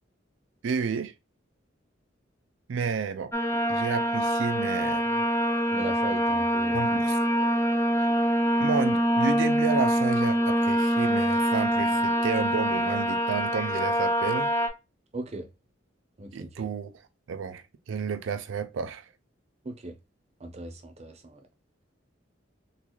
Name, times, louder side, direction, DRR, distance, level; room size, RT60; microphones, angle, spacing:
voice 1, 0.6-1.1 2.7-3.3 3.7-5.3 6.7-7.2 8.0-8.1 8.6-14.5 16.3-16.9 17.3-19.1, right 5 dB, 85° right, 0.4 m, -31 dB
sound 1, 3.3-14.7, equal, 15° left, 0.5 m, -25 dB
voice 2, 5.7-6.9 11.8-11.9 15.1-15.5 16.2-16.7 19.6-20.0 20.4-21.4, right 1 dB, 35° right, 0.6 m, -38 dB
3.9 x 2.4 x 3.0 m
head